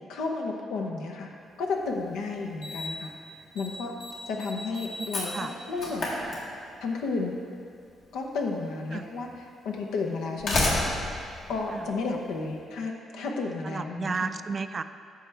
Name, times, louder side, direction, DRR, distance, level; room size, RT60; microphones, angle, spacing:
voice 1, 0.1-1.3 1.6-3.1 3.5-3.9 4.3-6.1 6.8-7.3 8.1-10.9 11.5-14.3, left 3 dB, 85° left, 1 dB, 0.9 m, -32 dB
Slam, 1.8-1.9 2.6-3.1 3.4-3.7 4.0-6.9 8.1-8.2 9.0-9.1 10.1-12.4, left 2 dB, 65° left, 1.9 m, -31 dB
voice 2, 13.6-14.8, right 5 dB, 35° right, 11 dB, 0.3 m, -32 dB
10.0 x 6.5 x 3.4 m, 2.3 s
cardioid pair, 90°, 0 cm